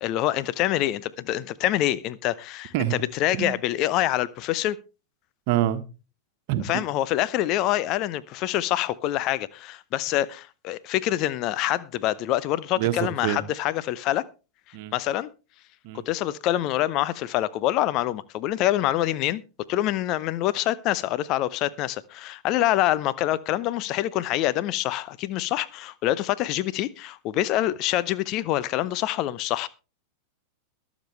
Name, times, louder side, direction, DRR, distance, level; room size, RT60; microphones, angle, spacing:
voice 1, 0.0-2.7 3.2-4.8 6.7-14.2 14.9-15.3 16.1-19.4 19.7-29.7, left 14 dB, 40° left, 0.7 m, -26 dB
voice 2, 5.5-5.8 6.5-6.8 12.8-13.4 14.7-14.9 15.8-16.0, right 13 dB, 45° right, 1.4 m, -26 dB
22.0 x 7.4 x 3.3 m
figure-of-eight pair, 90°, 0 cm